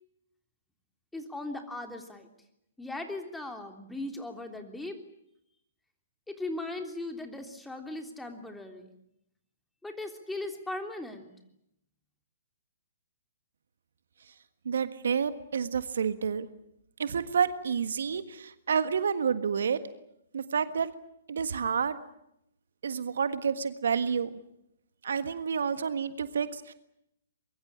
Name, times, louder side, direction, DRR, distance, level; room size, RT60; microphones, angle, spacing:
voice 1, 1.1-2.3 2.8-5.0 6.3-8.9 9.8-11.3, left 2 dB, 5° left, 5 dB, 3.4 m, -38 dB
voice 2, 14.6-16.5 17.0-19.8 20.3-20.9 21.3-22.0 22.8-24.4 25.0-26.7, right 6 dB, 70° right, 12 dB, 1.5 m, -29 dB
24.0 x 22.5 x 8.8 m, 0.78 s
figure-of-eight pair, 120°, 0 cm